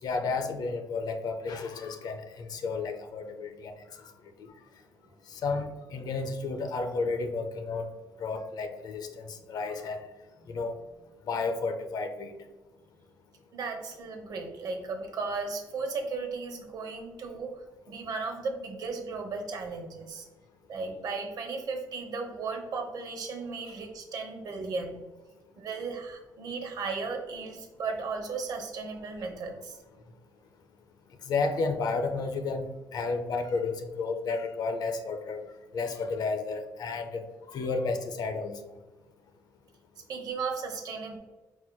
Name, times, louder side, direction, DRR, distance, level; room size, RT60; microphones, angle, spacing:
voice 1, 0.0-3.7 4.0-4.1 4.4-4.5 5.3-7.9 8.2-10.0 10.5-10.7 11.3-12.4 31.3-35.4 35.7-37.2 37.5-38.6, left 4 dB, 65° left, 6 dB, 0.5 m, -32 dB
voice 2, 13.5-17.5 17.9-20.3 20.7-25.0 25.6-29.8 40.1-41.2, right 4 dB, 65° right, 3 dB, 0.9 m, -35 dB
4.4 x 4.0 x 2.2 m, 1.2 s
cardioid pair, 105°, 7 cm